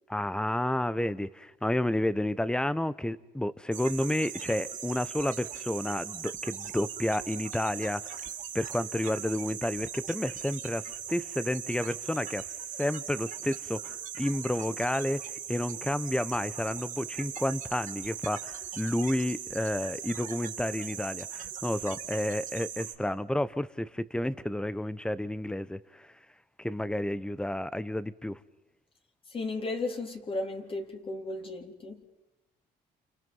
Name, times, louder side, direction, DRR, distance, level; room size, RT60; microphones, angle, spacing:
voice 1, 0.1-8.2 8.5-12.5 12.8-26.1 26.6-28.4, left 1 dB, 5° left, 1.1 m, -31 dB
sound 1, 3.7-23.0, right 9 dB, 50° right, 3.3 m, -40 dB
voice 2, 29.3-32.0, left 2 dB, 30° left, 4.0 m, -35 dB
29.5 x 29.0 x 5.6 m
cardioid pair, 110°, 17 cm